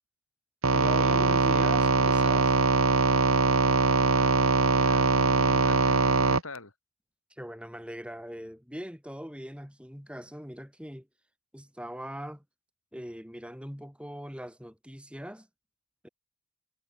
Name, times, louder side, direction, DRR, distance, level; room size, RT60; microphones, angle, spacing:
sound 1, 0.6-6.4, right 3 dB, 80° right, 2.1 m, -22 dB
voice 1, 0.7-2.6 7.3-11.1 11.5-12.4 12.9-15.5 16.0-16.1, equal, 5° right, 6.9 m, -40 dB
voice 2, 3.8-6.7, left 3 dB, 85° left, 7.2 m, -44 dB
head